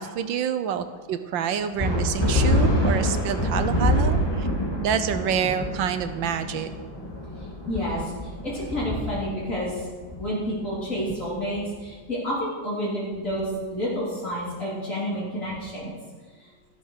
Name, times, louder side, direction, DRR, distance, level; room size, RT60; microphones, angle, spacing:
voice 1, 0.0-4.5 4.8-6.7, right 8 dB, 80° right, 10 dB, 1.5 m, -27 dB
sound 1, 1.8-11.7, left 1 dB, 15° left, 2.3 m, -26 dB
voice 2, 7.3-9.9 10.2-15.9 16.4-16.5, equal, 45° left, -8 dB, 3.8 m, -29 dB
13.5 x 12.5 x 6.5 m, 1.5 s
omnidirectional pair, 2.0 m